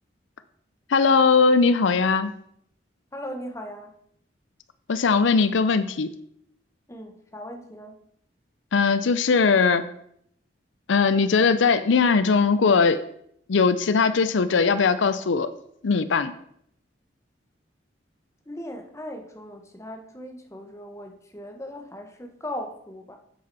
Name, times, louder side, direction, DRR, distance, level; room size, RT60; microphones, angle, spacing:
voice 1, 0.9-2.3 4.9-6.1 8.7-9.8 10.9-13.0 13.5-15.5 15.8-16.3, left 5 dB, 80° left, 13 dB, 0.5 m, -20 dB
voice 2, 3.1-3.9 6.9-8.0 18.5-23.2, left 1 dB, 15° left, 3 dB, 1.1 m, -38 dB
9.8 x 7.7 x 4.1 m, 0.70 s
head